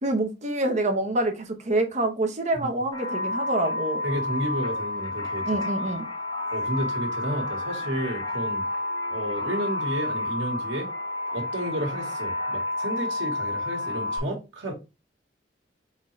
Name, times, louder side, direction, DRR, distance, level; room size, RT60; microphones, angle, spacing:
voice 1, 0.0-4.0 5.5-6.0, right 2 dB, 40° right, 0.9 m, -26 dB
sound 1, 2.9-14.2, left 2 dB, 25° left, 0.9 m, -30 dB
voice 2, 4.0-5.9 6.5-8.7 9.1-10.9 11.3-14.7, equal, 85° right, 1.5 m, -32 dB
3.9 x 3.8 x 3.1 m
head